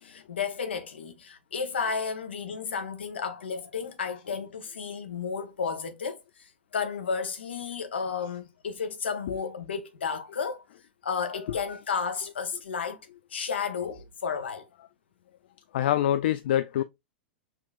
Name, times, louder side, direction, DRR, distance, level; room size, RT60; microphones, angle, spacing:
voice 1, 0.0-10.6 11.0-13.0 13.3-14.7, left 6 dB, 75° left, 1.0 m, -32 dB
voice 2, 11.3-11.6 12.2-12.3 15.7-16.8, left 11 dB, 60° left, 0.4 m, -26 dB
6.0 x 3.0 x 2.4 m
figure-of-eight pair, 100°, 6 cm